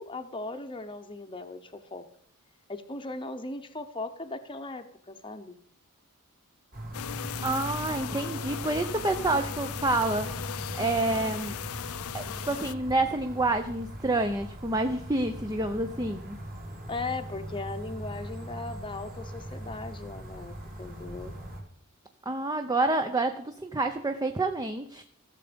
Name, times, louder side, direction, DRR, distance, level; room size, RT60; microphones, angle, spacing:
voice 1, 0.0-2.1 2.7-5.5 16.9-21.3, left 3 dB, 20° left, 6 dB, 0.9 m, -38 dB
sound 1, 6.7-21.6, right 1 dB, 40° right, 3.0 m, -40 dB
sound 2, 6.9-12.7, left 10 dB, 70° left, 0.4 m, -38 dB
voice 2, 7.4-10.3 10.7-11.5 12.1-16.4 22.3-25.0, right 2 dB, 15° right, 7 dB, 0.6 m, -28 dB
15.0 x 7.0 x 5.1 m, 0.67 s
head